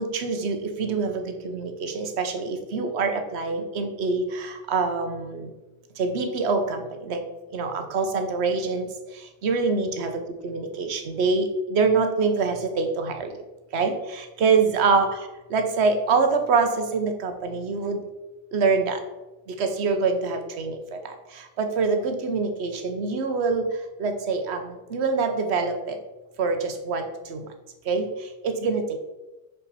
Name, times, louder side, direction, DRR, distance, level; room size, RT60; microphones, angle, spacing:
voice 1, 0.0-5.5 6.0-7.2 7.5-13.3 13.7-18.0 18.5-19.0 19.5-26.0 26.4-27.5 27.8-29.0, right 4 dB, 65° right, 6 dB, 1.1 m, -25 dB
6.2 x 5.4 x 4.1 m, 1.1 s
omnidirectional pair, 1.2 m